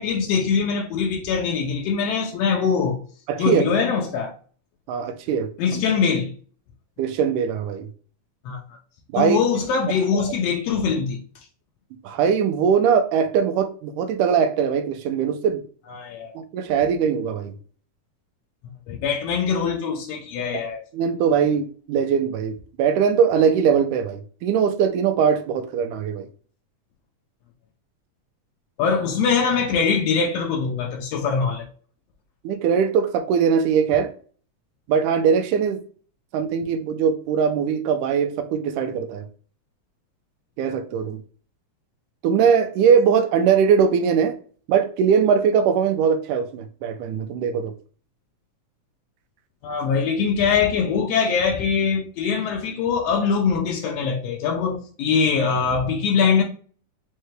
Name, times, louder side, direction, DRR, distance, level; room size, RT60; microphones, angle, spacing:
voice 1, 0.0-3.0 3.4-4.3 5.6-6.3 8.4-8.6 9.1-11.2 15.9-16.3 18.9-20.8 28.8-31.7 49.6-56.4, left 6 dB, 90° left, 1.4 m, -22 dB
voice 2, 3.3-3.6 4.9-5.8 7.0-7.9 9.1-9.4 10.1-10.3 12.0-15.6 16.4-17.5 20.9-26.3 32.4-34.1 34.9-35.8 36.3-39.3 40.6-41.2 42.2-44.4 44.7-47.7, right 7 dB, 85° right, 2.1 m, -21 dB
5.6 x 2.2 x 3.1 m
omnidirectional pair, 3.6 m